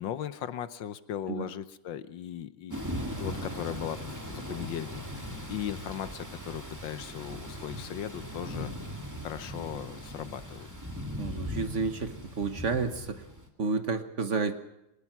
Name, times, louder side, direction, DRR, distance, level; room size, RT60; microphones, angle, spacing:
voice 1, 0.0-2.9 3.1-4.0 4.3-8.9 9.2-10.7, left 10 dB, 75° left, 13 dB, 1.6 m, -38 dB
Thunder / Rain, 2.7-13.5, equal, 10° right, 2.2 m, -39 dB
voice 2, 11.2-13.2 13.6-14.5, right 4 dB, 45° right, 9 dB, 1.4 m, -31 dB
22.5 x 19.5 x 6.0 m, 0.91 s
omnidirectional pair, 2.1 m